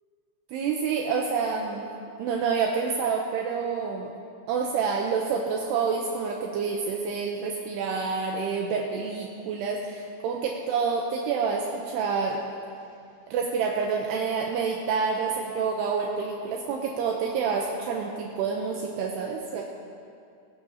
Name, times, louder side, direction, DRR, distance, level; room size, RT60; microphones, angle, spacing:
voice 1, 0.5-1.9 2.2-4.1 4.5-12.4 13.3-19.6, right 5 dB, 85° right, 0 dB, 2.4 m, -28 dB
19.0 x 16.0 x 2.9 m, 2.5 s
omnidirectional pair, 5.8 m